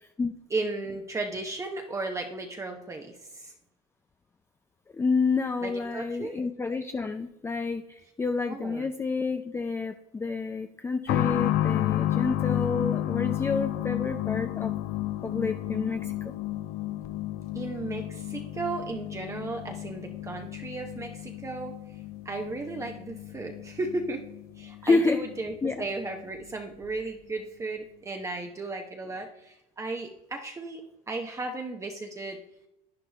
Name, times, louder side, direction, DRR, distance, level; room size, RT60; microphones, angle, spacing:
voice 1, 0.0-0.3 4.9-14.7 15.2-16.3 24.8-25.2 25.6-25.8, left 4 dB, 15° left, 7 dB, 0.5 m, -29 dB
voice 2, 0.5-3.5 5.6-6.4 8.5-8.9 17.5-21.8 22.2-24.2 24.6-32.4, right 3 dB, 15° right, 3 dB, 0.9 m, -35 dB
sound 1, 11.1-25.5 25.8-25.9 26.8-26.9, left 14 dB, 60° left, 0.7 m, -31 dB
10.5 x 9.8 x 3.4 m, 0.90 s
cardioid pair, 130°, 17 cm